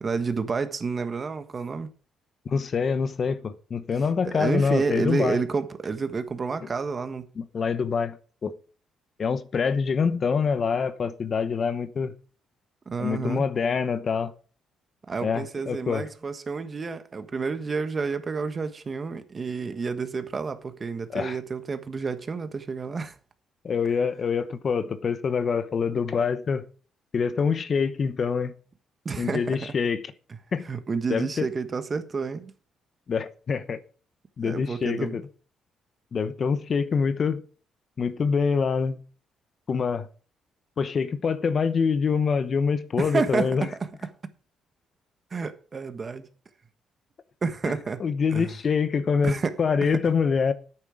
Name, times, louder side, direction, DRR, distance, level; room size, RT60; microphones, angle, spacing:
voice 1, 0.0-1.9 4.2-7.3 12.9-13.4 15.1-23.1 29.0-29.7 30.7-32.5 34.4-35.2 43.0-43.9 45.3-46.3 47.4-48.0 48.3-48.5 49.2-49.5, right 4 dB, 35° right, 1.4 m, -29 dB
voice 2, 2.4-5.4 6.6-6.7 7.4-8.5 9.2-12.1 13.0-14.3 15.2-16.1 21.1-21.4 23.6-26.6 27.1-28.5 29.2-30.1 30.5-30.7 31.1-31.5 33.1-33.8 34.4-35.3 36.1-37.4 38.0-39.0 39.7-40.1 40.8-43.7 47.7-47.8 48.0-50.5, left 5 dB, 45° left, 1.0 m, -25 dB
9.9 x 9.0 x 5.0 m
cardioid pair, 90°, 0 cm